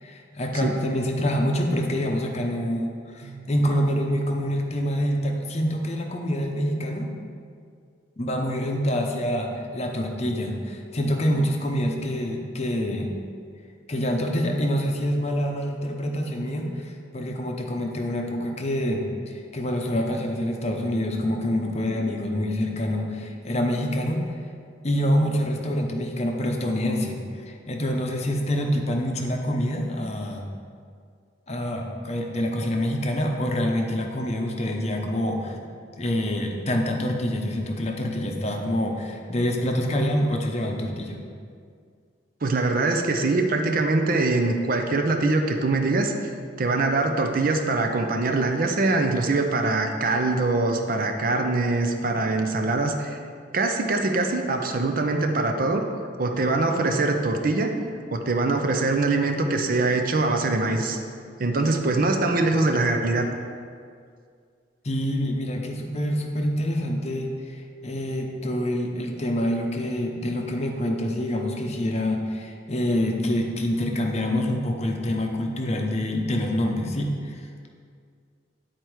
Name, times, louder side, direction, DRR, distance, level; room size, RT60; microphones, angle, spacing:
voice 1, 0.0-7.1 8.2-13.1 13.9-24.2 24.8-30.5 31.5-41.1 64.8-77.7, equal, 35° left, 2 dB, 0.7 m, -26 dB
voice 2, 42.4-46.1 46.6-53.2 53.5-55.8 56.2-57.7 58.1-61.0 61.4-63.2, right 3 dB, 45° right, 4 dB, 0.5 m, -23 dB
9.6 x 4.4 x 4.7 m, 2.2 s
head